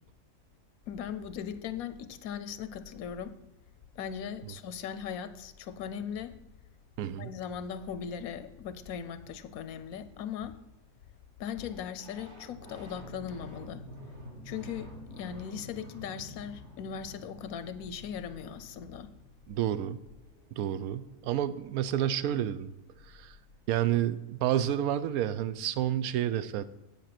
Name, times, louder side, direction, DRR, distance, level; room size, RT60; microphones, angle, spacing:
voice 1, 0.9-3.3 4.0-6.3 7.2-10.6 11.4-13.8 14.4-19.1, left 8 dB, 90° left, 1.1 m, -39 dB
voice 2, 7.0-7.3 19.5-20.0 20.6-22.7 23.1-23.4 23.7-26.6, right 11 dB, 90° right, 1.0 m, -30 dB
sound 1, 11.5-22.0 24.0-24.1 24.3-26.1, equal, 50° right, 2.3 m, -50 dB
8.1 x 7.5 x 5.8 m
omnidirectional pair, 1.5 m